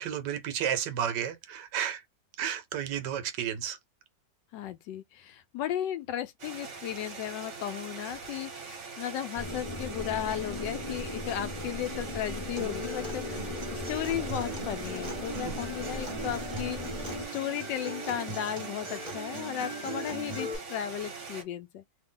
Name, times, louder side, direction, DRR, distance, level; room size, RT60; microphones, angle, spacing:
voice 1, 0.0-2.0 2.4-3.8 15.3-15.6, right 9 dB, 75° right, 1.3 m, -32 dB
voice 2, 4.5-21.8, left 11 dB, 85° left, 1.3 m, -35 dB
sound 1, 6.4-21.4, right 4 dB, 50° right, 1.1 m, -43 dB
sound 2, 9.4-17.3, left 2 dB, 30° left, 0.5 m, -38 dB
Acoustic guitar, 12.6-20.6, right 1 dB, 20° right, 1.1 m, -39 dB
2.8 x 2.6 x 3.7 m
omnidirectional pair, 1.9 m